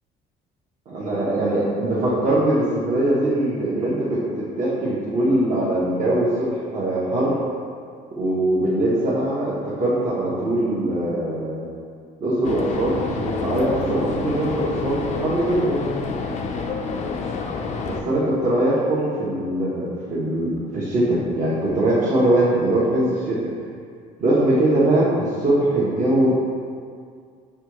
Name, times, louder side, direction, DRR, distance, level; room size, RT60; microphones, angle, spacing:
voice 1, 0.9-7.4 8.1-11.6 12.2-15.9 17.8-23.4 24.2-26.3, right 1 dB, 45° right, -10 dB, 1.0 m, -21 dB
sound 1, 12.4-18.0, left 4 dB, 45° left, 0.4 m, -28 dB
5.6 x 2.3 x 3.0 m, 2.1 s
cardioid pair, 110°, 17 cm